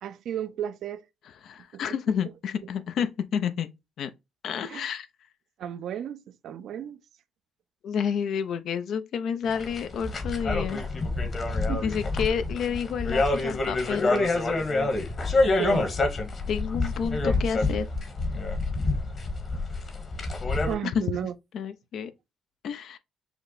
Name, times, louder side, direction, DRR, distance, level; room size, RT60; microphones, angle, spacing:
voice 1, 0.0-1.0 4.7-4.8 5.6-7.0 11.7-11.8 15.6-15.9 20.7-21.3, right 10 dB, 75° right, 0.5 m, -33 dB
voice 2, 1.2-3.7 4.0-4.1 4.4-5.1 7.8-10.8 11.8-14.2 16.5-17.9 20.8-21.0 21.5-22.1 22.6-23.0, left 7 dB, 70° left, 0.6 m, -30 dB
sound 1, 9.5-20.7, left 2 dB, 45° left, 1.4 m, -27 dB
5.8 x 2.2 x 4.0 m
cardioid pair, 90°, 0 cm